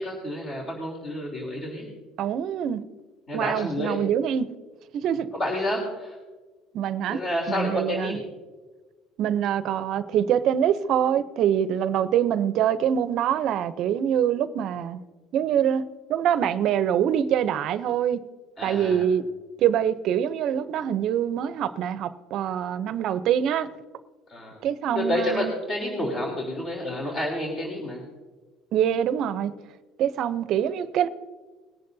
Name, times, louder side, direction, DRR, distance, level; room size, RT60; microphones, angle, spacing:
voice 1, 0.0-1.9 3.3-4.0 5.0-6.2 7.1-8.2 18.6-19.0 24.3-24.6 24.9-28.0, left 1 dB, 35° left, 3.3 m, -29 dB
voice 2, 2.2-2.8 3.3-4.5 4.9-5.3 6.7-7.2 7.5-8.2 9.2-15.0 15.3-15.8 16.1-18.2 18.6-19.2 19.6-23.7 24.6-25.5 28.7-29.5 30.0-31.1, right 9 dB, 55° right, 0.6 m, -24 dB
21.0 x 10.5 x 2.7 m
cardioid pair, 130°, 0 cm